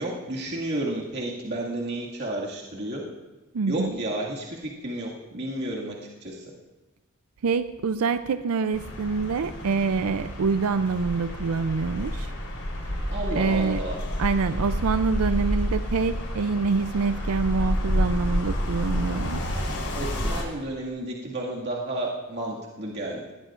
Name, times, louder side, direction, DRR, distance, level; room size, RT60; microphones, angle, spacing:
voice 1, 0.0-3.0 3.7-6.5 13.1-14.0 19.9-23.3, right 1 dB, 50° right, -4 dB, 2.0 m, -32 dB
voice 2, 3.5-3.9 7.4-12.3 12.9-13.0 13.4-13.8 14.2-19.4, right 4 dB, 85° right, 11 dB, 0.5 m, -26 dB
sound 1, 8.7-20.4, equal, 85° left, 3.8 m, -29 dB
19.0 x 19.0 x 2.5 m, 1.2 s
head